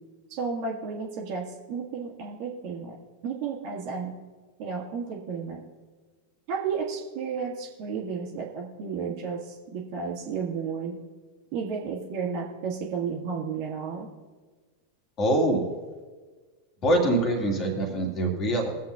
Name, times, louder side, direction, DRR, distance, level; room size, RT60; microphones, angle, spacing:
voice 1, 0.3-3.0 3.2-4.1 4.6-5.6 6.5-11.0 11.5-14.1, right 5 dB, 45° right, -1 dB, 1.7 m, -32 dB
voice 2, 15.2-15.7 16.8-18.7, right 1 dB, 30° left, 2 dB, 2.1 m, -24 dB
21.5 x 7.6 x 2.4 m, 1.4 s
figure-of-eight pair, 90°, 0 cm